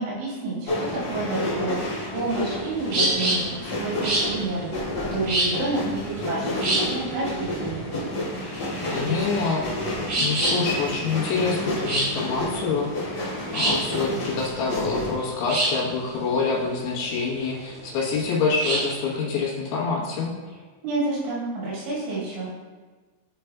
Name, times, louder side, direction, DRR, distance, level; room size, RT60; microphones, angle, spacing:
voice 1, 0.0-1.8 2.1-4.7 5.1-7.8 20.8-22.5, right 2 dB, 75° right, -7 dB, 4.3 m, -29 dB
sound 1, 0.7-15.1, left 1 dB, 40° left, 1.8 m, -30 dB
sound 2, 2.0-18.9, right 1 dB, 45° right, 3.0 m, -28 dB
voice 2, 8.9-9.6 10.2-12.9 13.5-20.3, left 4 dB, 80° left, -4 dB, 3.5 m, -26 dB
11.0 x 4.9 x 2.3 m, 1.3 s
omnidirectional pair, 5.6 m